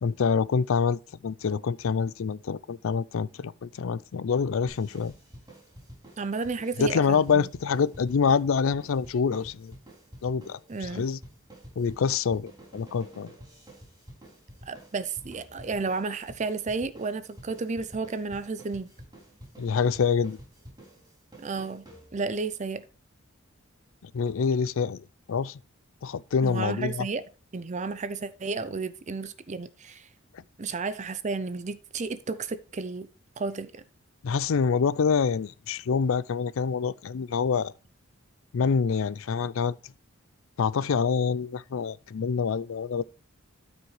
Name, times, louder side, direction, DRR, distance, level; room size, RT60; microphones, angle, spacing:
voice 1, 0.0-5.1 6.8-9.7 10.2-11.2 11.8-13.3 19.6-20.4 24.1-25.0 25.3-25.6 26.0-27.1 34.2-37.7 38.5-39.8 40.6-43.0, left 6 dB, 70° left, 0.4 m, -26 dB
sound 1, 4.7-22.4, right 1 dB, 20° right, 5.0 m, -49 dB
voice 2, 6.2-7.5 10.7-11.0 14.7-18.9 21.4-21.8 22.1-22.8 26.4-27.2 27.5-30.1 30.6-33.1 33.4-33.8, right 4 dB, 35° right, 0.5 m, -32 dB
13.0 x 5.2 x 3.3 m
head